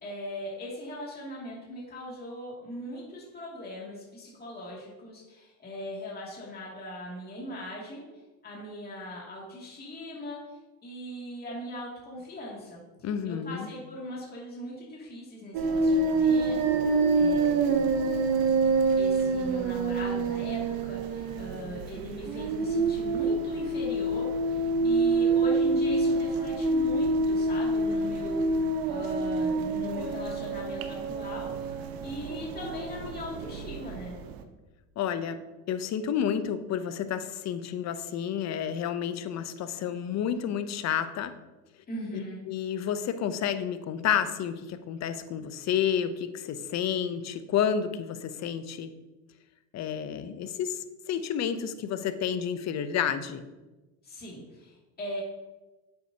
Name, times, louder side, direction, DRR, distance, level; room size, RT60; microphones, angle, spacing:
voice 1, 0.0-8.0 8.4-10.4 10.8-12.8 13.2-17.9 19.0-34.1 41.9-42.4 54.0-55.2, equal, 20° left, -4 dB, 2.5 m, -39 dB
voice 2, 13.0-13.7 35.0-35.4 35.7-41.3 42.5-48.9 49.7-53.4, left 8 dB, 40° left, 11 dB, 0.7 m, -30 dB
sound 1, 15.5-34.4, right 3 dB, 50° right, 1.0 m, -27 dB
9.3 x 7.9 x 2.8 m, 1.1 s
supercardioid pair, 110°, 44 cm